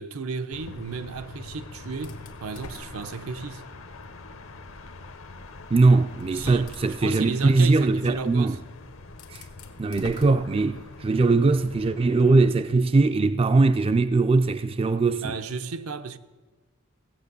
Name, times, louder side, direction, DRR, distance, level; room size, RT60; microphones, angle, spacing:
voice 1, 0.0-3.7 6.3-6.7 7.0-8.6 15.2-16.2, right 4 dB, 80° right, 0.7 m, -33 dB
sound 1, 0.5-12.5, left 2 dB, 65° left, 0.8 m, -44 dB
sound 2, 2.0-3.7 4.2-4.3 5.5-5.6 6.2-7.2 8.6-8.7 9.1-11.1, left 3 dB, 85° left, 1.3 m, -44 dB
voice 2, 5.7-8.6 9.3-9.4 9.8-15.3, right 3 dB, 25° right, 0.3 m, -21 dB
16.0 x 7.7 x 6.7 m
head